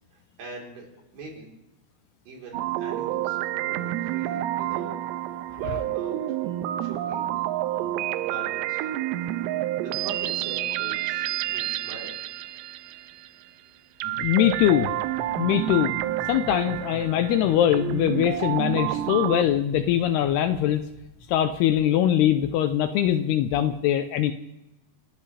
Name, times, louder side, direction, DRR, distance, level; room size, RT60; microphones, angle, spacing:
voice 1, 0.1-0.9 1.1-1.5 2.3-5.0 5.3-6.5 6.8-8.8 9.4-9.5 9.8-12.1, right 3 dB, 65° right, -2 dB, 5.9 m, -43 dB
sound 1, 2.5-13.4 14.0-19.4, right 14 dB, 80° right, 2.8 m, -29 dB
sound 2, 14.0-22.6, left 4 dB, 35° left, 1.8 m, -46 dB
voice 2, 14.2-14.9 15.4-16.0 16.3-20.8 21.3-24.3, left 11 dB, 80° left, 8 dB, 2.5 m, -22 dB
29.0 x 13.5 x 3.4 m, 0.97 s
omnidirectional pair, 5.1 m